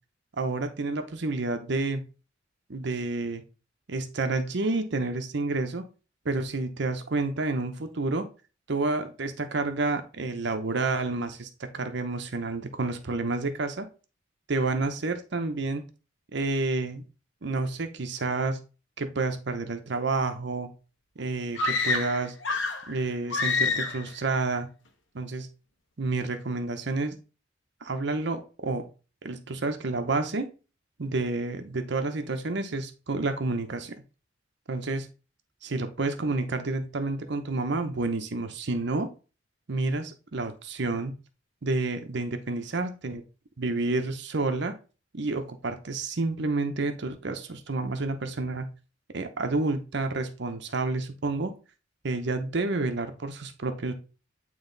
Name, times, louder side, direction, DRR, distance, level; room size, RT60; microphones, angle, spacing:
voice 1, 0.4-2.0 2.7-3.4 3.9-5.9 6.2-8.3 8.7-13.9 14.5-15.9 16.3-17.0 17.4-18.6 19.0-20.7 21.2-22.3 22.9-24.7 25.1-25.5 26.0-27.2 27.8-28.8 29.2-30.5 31.0-33.9 34.7-35.1 35.6-39.1 39.7-41.1 41.6-43.2 43.6-44.8 45.1-48.7 49.1-51.5 52.0-53.9, right 3 dB, 60° right, 7 dB, 0.8 m, -29 dB
sound 1, 21.5-22.9 23.3-24.1, left 4 dB, 80° left, 1.2 m, -27 dB
9.0 x 3.1 x 3.9 m, 0.34 s
head